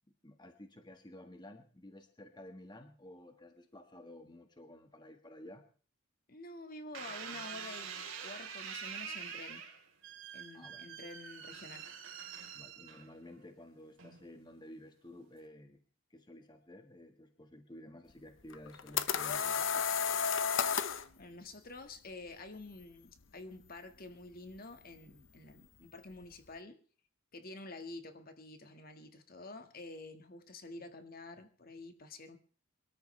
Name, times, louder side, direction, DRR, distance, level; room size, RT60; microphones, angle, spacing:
voice 1, 0.2-5.6 10.5-10.8 12.5-15.8 16.1-19.8, left 1 dB, 20° left, 6 dB, 1.5 m, -53 dB
voice 2, 6.3-9.6 10.3-11.9 21.2-26.8 27.3-32.4, left 2 dB, 45° left, 7 dB, 1.7 m, -49 dB
sound 1, 6.9-13.3 14.0-14.5, right 7 dB, 70° right, 3.5 m, -45 dB
sound 2, 18.5-21.1, left 7 dB, 65° left, 0.9 m, -32 dB
24.0 x 13.0 x 3.3 m, 0.42 s
head